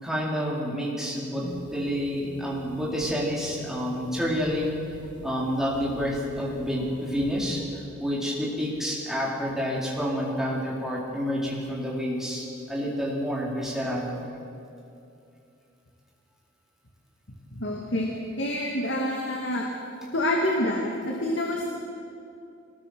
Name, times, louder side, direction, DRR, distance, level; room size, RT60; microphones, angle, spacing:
voice 1, 0.0-1.4 1.7-4.8 5.2-7.6 8.0-14.3, equal, ahead, -5 dB, 4.2 m, -29 dB
sound 1, 1.4-7.6, left 1 dB, 40° right, 3.1 m, -45 dB
voice 2, 17.5-18.1 18.4-19.7 20.1-21.7, left 1 dB, 65° left, -1 dB, 2.3 m, -27 dB
23.5 x 20.0 x 6.4 m, 2.6 s
head